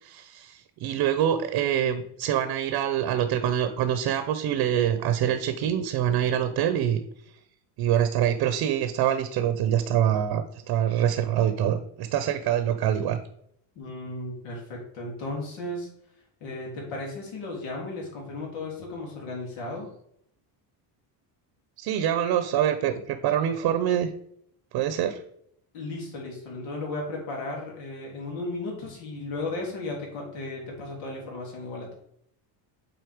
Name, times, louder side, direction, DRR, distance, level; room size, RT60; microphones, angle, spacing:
voice 1, 0.0-7.0 7.8-13.2 21.8-24.1 24.7-25.2, right 10 dB, 60° right, 10 dB, 0.8 m, -25 dB
voice 2, 13.8-15.9 16.4-19.9 25.7-31.9, left 2 dB, 90° left, -2 dB, 3.4 m, -35 dB
7.9 x 4.4 x 4.9 m, 0.70 s
cardioid pair, 145°, 45 cm